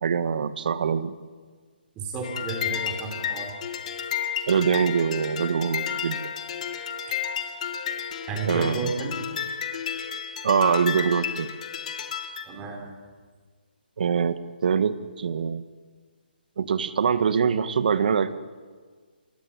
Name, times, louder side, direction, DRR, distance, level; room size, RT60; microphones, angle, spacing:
voice 1, 0.0-1.1 4.5-6.2 8.4-8.9 10.4-11.5 14.0-15.6 16.6-18.3, right 6 dB, 55° right, 12 dB, 1.7 m, -24 dB
voice 2, 2.0-3.5 7.1-7.2 8.3-9.2 12.5-12.8, right 3 dB, 15° right, 3 dB, 3.6 m, -32 dB
sound 1, 2.2-12.5, left 8 dB, 40° left, 2.2 m, -32 dB
27.0 x 18.5 x 10.0 m, 1.5 s
hypercardioid pair, 160°, 6 cm